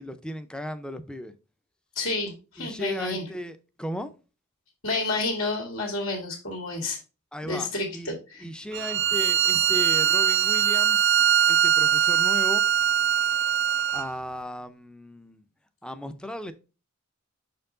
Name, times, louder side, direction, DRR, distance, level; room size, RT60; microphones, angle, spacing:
voice 1, 0.0-1.3 2.6-4.1 7.3-8.1 8.4-11.1 11.5-12.6 13.9-15.4 15.8-16.5, equal, 5° left, 0.5 m, -36 dB
voice 2, 2.0-3.2 4.8-7.0 7.4-8.4, left 3 dB, 75° left, 1.9 m, -30 dB
Bowed string instrument, 8.7-14.1, right 9 dB, 60° right, 0.3 m, -22 dB
6.2 x 4.5 x 3.8 m
head